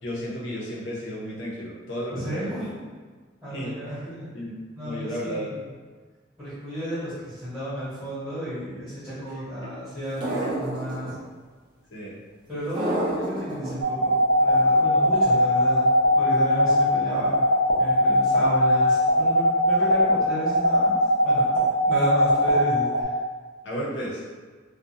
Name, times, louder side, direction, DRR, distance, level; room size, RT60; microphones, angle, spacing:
voice 1, 0.0-2.7 3.5-3.9 4.3-4.5 4.8-5.6 9.3-9.7 10.4-10.5 11.9-12.2 23.6-24.2, equal, 60° left, -6 dB, 0.7 m, -33 dB
voice 2, 2.1-2.7 3.4-4.3 4.7-5.7 6.4-11.1 12.5-17.5 17.8-20.9 21.2-23.1, equal, 5° right, -13 dB, 1.0 m, -32 dB
sound 1, 10.2-11.1 12.8-13.7, right 1 dB, 20° right, 0.4 m, -28 dB
sound 2, 13.8-23.0, equal, 80° right, 0.5 m, -19 dB
2.5 x 2.2 x 2.7 m, 1.5 s
head